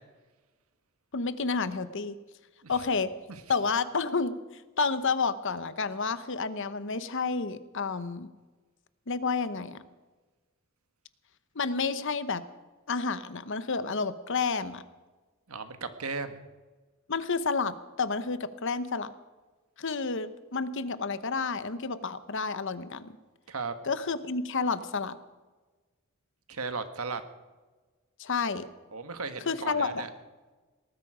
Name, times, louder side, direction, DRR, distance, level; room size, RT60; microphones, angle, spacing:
voice 1, 1.1-2.1 2.7-3.1 3.5-4.4 4.8-8.3 9.1-9.8 11.5-12.4 12.9-14.8 17.1-19.1 19.8-23.2 23.8-25.2 28.2-28.7 29.5-30.0, left 4 dB, 60° left, 13 dB, 0.9 m, -30 dB
voice 2, 15.5-16.4 23.5-23.7 26.5-27.2 28.9-30.1, right 4 dB, 80° right, 9 dB, 1.5 m, -36 dB
19.0 x 13.5 x 5.0 m, 1.2 s
head